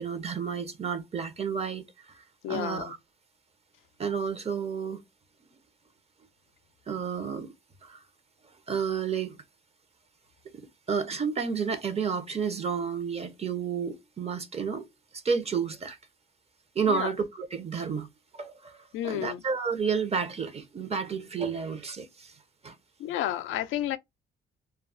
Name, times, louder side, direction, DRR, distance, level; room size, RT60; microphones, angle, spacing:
voice 1, 0.0-3.0 4.0-5.0 6.9-7.5 7.8-8.0 8.7-9.4 10.5-14.9 15.1-16.0 16.7-18.1 18.3-22.4 22.6-22.8, right 6 dB, 30° right, 0.6 m, -31 dB
voice 2, 2.4-2.9 16.9-17.1 18.9-19.4 23.0-24.0, left 12 dB, 80° left, 0.4 m, -31 dB
2.2 x 2.0 x 3.7 m
cardioid pair, 90°, 20 cm